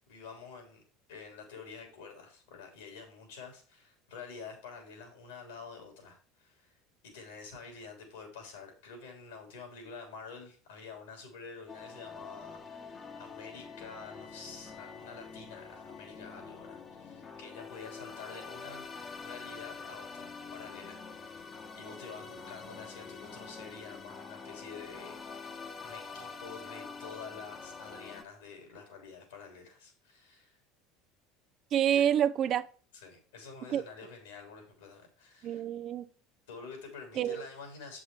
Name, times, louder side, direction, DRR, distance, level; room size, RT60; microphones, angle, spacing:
voice 1, 0.1-0.8 1.1-6.7 7.1-18.8 19.2-30.6 31.9-32.1 33.0-35.6 36.5-38.0, left 5 dB, 80° left, 3.3 m, -48 dB
sound 1, 11.7-28.2, left 5 dB, 35° left, 1.2 m, -46 dB
voice 2, 31.7-32.7 33.7-33.8 35.4-36.1 37.2-37.5, right 10 dB, 50° right, 0.6 m, -28 dB
7.9 x 6.2 x 4.7 m
hypercardioid pair, 75°, 0 cm